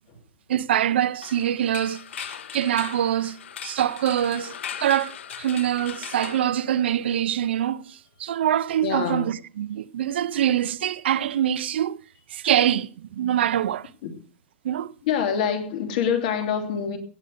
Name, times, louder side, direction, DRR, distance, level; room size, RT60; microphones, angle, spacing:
voice 1, 0.5-3.4 3.6-12.0 12.3-13.9 14.6-14.9, right 11 dB, 65° right, 0.6 m, -24 dB
sound 1, 1.2-7.2, left 9 dB, 90° left, 1.3 m, -39 dB
voice 2, 8.8-9.3 14.0-14.2 15.0-17.0, left 7 dB, 40° left, 2.9 m, -25 dB
18.0 x 6.7 x 6.5 m
supercardioid pair, 175°, 6 cm